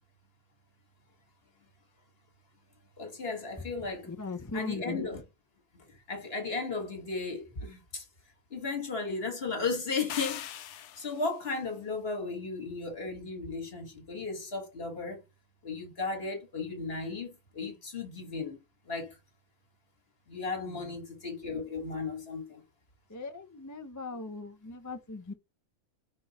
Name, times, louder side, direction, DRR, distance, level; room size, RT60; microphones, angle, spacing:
voice 1, 3.0-4.1 4.5-5.2 5.7-8.1 8.5-15.2 15.6-18.6 18.9-19.2 20.3-22.6, left 4 dB, 45° left, 2.0 m, -35 dB
voice 2, 4.0-5.0 20.7-20.9 23.1-25.3, left 3 dB, 20° left, 0.4 m, -39 dB
sound 1, 10.1-11.4, left 11 dB, 65° left, 0.8 m, -40 dB
5.4 x 4.4 x 4.2 m
omnidirectional pair, 1.5 m